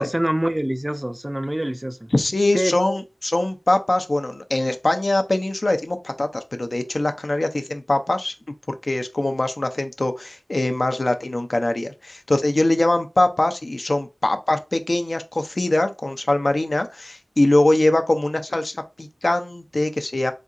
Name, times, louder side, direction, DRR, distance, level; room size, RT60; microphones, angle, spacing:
voice 1, 0.0-2.0 2.5-2.7, right 1 dB, 20° right, 0.4 m, -24 dB
voice 2, 2.1-8.3 8.9-20.3, left 2 dB, 65° left, 0.6 m, -22 dB
4.2 x 3.7 x 2.4 m
wide cardioid pair, 45°, 0 cm